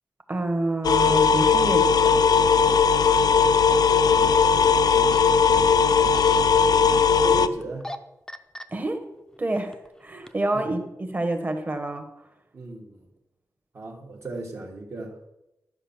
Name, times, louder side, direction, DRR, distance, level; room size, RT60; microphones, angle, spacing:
voice 1, 0.3-2.2 8.7-9.0 9.4-12.1, right 2 dB, 25° right, 6 dB, 1.4 m, -28 dB
sound 1, 0.8-7.5, left 6 dB, 75° left, 0.5 m, -18 dB
voice 2, 3.7-4.6 5.9-6.8 7.2-7.9 10.2-10.6 12.5-13.1 13.7-15.3, right 2 dB, 45° right, -2 dB, 1.6 m, -37 dB
sound 2, 4.8-5.2 5.9-6.4 7.6-8.0 8.3-8.6 9.4-9.9 10.3-10.4, left 1 dB, 10° left, 0.6 m, -37 dB
12.5 x 5.3 x 7.3 m, 0.91 s
wide cardioid pair, 155°, 7 cm